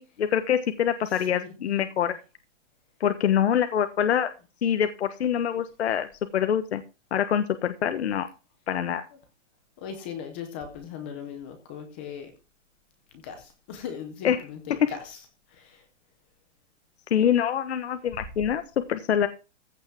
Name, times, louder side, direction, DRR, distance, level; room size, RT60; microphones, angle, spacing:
voice 1, 0.0-2.1 3.0-4.3 4.6-6.1 6.3-6.8 7.1-8.3 8.7-9.0 14.2-14.4 14.7-14.9 17.1-18.6 18.9-19.3, left 9 dB, 60° left, 9 dB, 1.4 m, -25 dB
voice 2, 1.3-2.0 9.8-12.3 13.2-15.2 15.5-15.8, left 7 dB, 10° left, 7 dB, 0.6 m, -39 dB
15.0 x 5.7 x 6.0 m, 0.30 s
hypercardioid pair, 180°, 37 cm